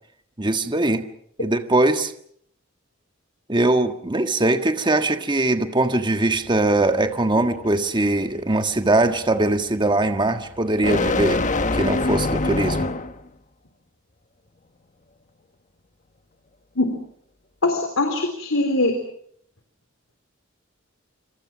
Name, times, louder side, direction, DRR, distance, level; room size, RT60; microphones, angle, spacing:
voice 1, 0.4-1.1 1.4-2.1 3.5-11.4 11.7-12.9, right 2 dB, 25° right, 7 dB, 1.6 m, -21 dB
sound 1, 6.3-13.3, left 2 dB, 40° left, 1.3 m, -27 dB
voice 2, 17.6-18.9, left 2 dB, 70° left, 5 dB, 3.9 m, -21 dB
27.0 x 26.5 x 6.2 m, 0.66 s
head